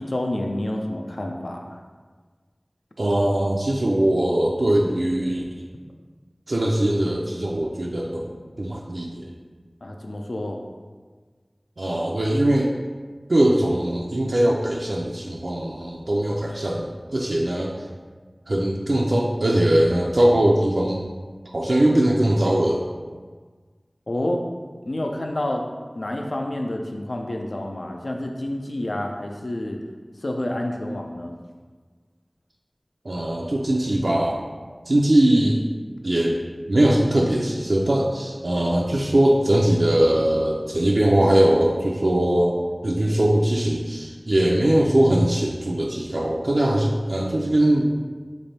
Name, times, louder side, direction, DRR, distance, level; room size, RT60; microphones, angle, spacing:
voice 1, 0.0-1.8 9.8-10.6 24.1-24.4 24.9-25.6 26.0-29.8 30.2-31.3, left 1 dB, 80° left, 2 dB, 0.4 m, -28 dB
voice 2, 3.0-5.4 6.5-9.3 11.8-12.7 13.3-17.7 18.5-21.0 21.5-22.8 33.0-34.5 34.9-35.6 36.0-36.4 36.7-42.6 42.8-47.9, right 1 dB, 80° right, -2 dB, 0.3 m, -21 dB
3.3 x 2.5 x 4.1 m, 1.5 s
wide cardioid pair, 40°, 0 cm